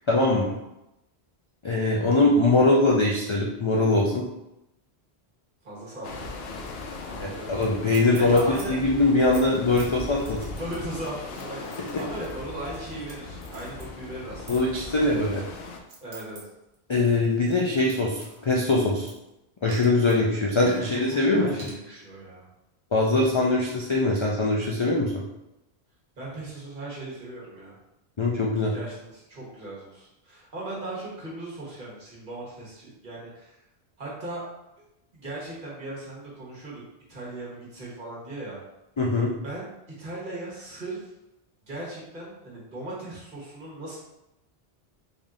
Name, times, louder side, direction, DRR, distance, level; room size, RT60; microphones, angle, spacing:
voice 1, 0.1-0.5 1.6-4.3 7.2-8.4 8.7-10.5 14.5-15.4 16.9-19.1 19.6-21.7 22.9-25.2 28.2-28.7 39.0-39.3, left 2 dB, 50° left, -3 dB, 0.3 m, -22 dB
voice 2, 5.6-6.7 7.1-7.7 8.1-8.7 10.5-11.7 12.0-14.9 16.0-16.4 20.8-22.4 26.2-27.7 28.7-33.6 34.0-34.4 35.1-36.8 37.1-38.6 39.4-39.7 40.0-41.1 41.7-44.0, right 2 dB, 50° right, -6 dB, 1.4 m, -38 dB
sound 1, 6.0-15.8, left 3 dB, 70° left, 0.8 m, -39 dB
sound 2, 6.4-6.8 7.1-7.2 7.6-7.7 7.9-8.6 9.1-13.1 13.4-13.9 14.5-14.6 15.3-16.4 16.7-19.3 19.7-20.2 20.7-20.9 21.6-21.7, right 2 dB, 85° right, 1.2 m, -46 dB
3.5 x 2.6 x 3.6 m, 0.90 s
omnidirectional pair, 1.1 m